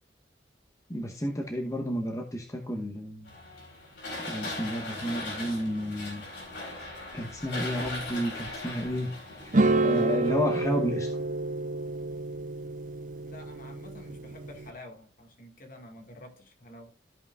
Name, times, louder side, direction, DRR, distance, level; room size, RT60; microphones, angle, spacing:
voice 1, 0.9-3.3 4.3-6.2 7.1-11.1, equal, 15° left, 0.9 m, -32 dB
sound 1, 3.3-10.9, left 2 dB, 65° left, 4.5 m, -39 dB
sound 2, 9.5-14.7, right 2 dB, 45° right, 0.6 m, -29 dB
voice 2, 13.2-16.9, left 1 dB, 50° left, 1.8 m, -48 dB
13.5 x 5.7 x 2.4 m
head